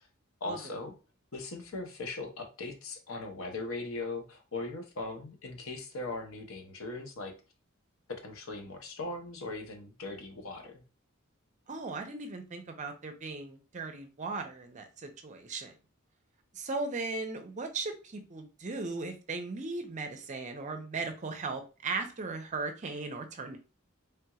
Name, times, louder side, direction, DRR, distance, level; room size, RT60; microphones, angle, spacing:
voice 1, 0.4-0.9 1.3-7.3 8.1-10.8, left 2 dB, 80° left, 4 dB, 0.7 m, -39 dB
voice 2, 11.7-15.7 16.5-23.6, right 3 dB, 35° right, 6 dB, 0.5 m, -37 dB
3.4 x 2.9 x 2.3 m, 0.33 s
head